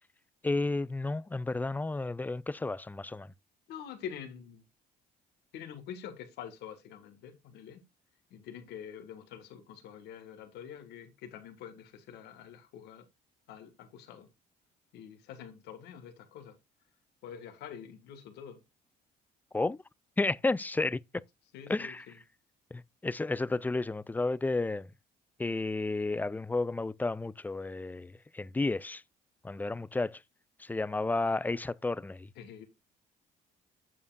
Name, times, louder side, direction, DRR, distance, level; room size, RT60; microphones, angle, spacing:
voice 1, 0.4-3.3 19.5-19.8 20.2-21.0 21.7-22.1 22.7-24.9 25.4-29.0 29.4-30.2 30.6-32.3, left 3 dB, 10° left, 0.3 m, -32 dB
voice 2, 3.7-4.6 5.5-7.8 8.3-13.1 13.5-14.3 14.9-16.6 17.2-18.6 21.5-22.2 32.4-32.7, left 8 dB, 80° left, 1.7 m, -46 dB
8.3 x 7.1 x 2.4 m
cardioid pair, 110°, 17 cm